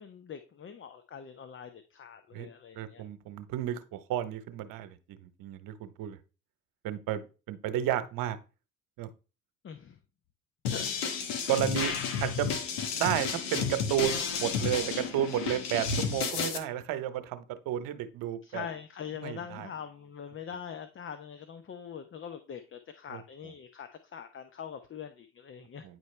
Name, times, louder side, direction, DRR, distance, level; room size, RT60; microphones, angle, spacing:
voice 1, 0.0-3.0 9.6-10.0 10.7-11.5 18.4-25.9, left 8 dB, 35° left, 9 dB, 0.8 m, -43 dB
voice 2, 2.7-6.2 6.8-8.4 9.0-9.1 11.5-11.9 12.2-12.6 12.9-18.7 19.2-19.7 23.1-23.2 25.8-26.0, right 12 dB, 65° right, 11 dB, 1.0 m, -32 dB
sound 1, 10.6-16.6, left 6 dB, 85° left, 1.3 m, -32 dB
9.4 x 4.6 x 3.3 m, 0.32 s
supercardioid pair, 75°, 35 cm